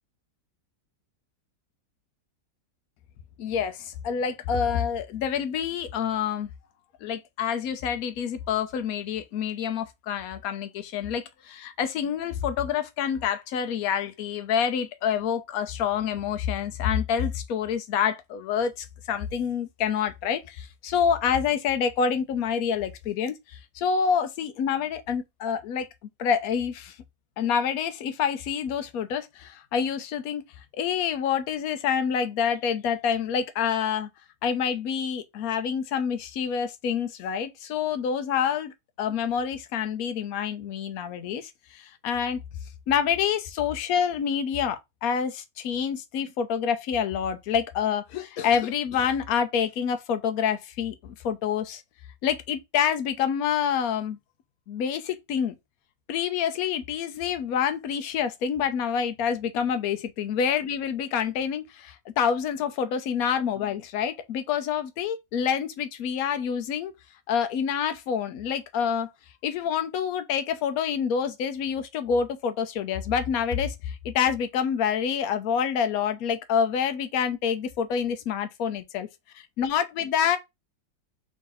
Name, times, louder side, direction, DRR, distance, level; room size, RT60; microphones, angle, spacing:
voice 1, 3.4-6.5 7.0-25.9 26.2-27.0 27.4-30.4 30.7-34.1 34.4-42.4 42.9-51.8 52.2-54.2 54.7-55.5 56.1-66.9 67.3-69.1 69.4-79.1 79.3-80.4, left 7 dB, 70° left, 0.9 m, -27 dB
3.6 x 2.7 x 3.9 m
omnidirectional pair, 1.9 m